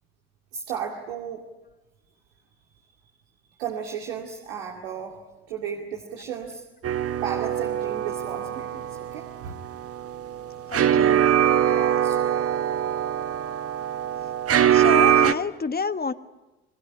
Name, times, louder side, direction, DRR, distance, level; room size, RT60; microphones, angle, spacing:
voice 1, 0.5-1.5 3.6-5.2 5.5-6.6 7.2-9.6 11.6-12.4, right 8 dB, 85° right, 0 dB, 2.4 m, -34 dB
sound 1, 6.8-15.3, right 10 dB, 45° right, 1.2 m, -23 dB
voice 2, 10.7-11.2 14.7-16.1, left 5 dB, 30° left, 11 dB, 1.4 m, -29 dB
26.5 x 20.5 x 10.0 m, 1.1 s
hypercardioid pair, 55°, 32 cm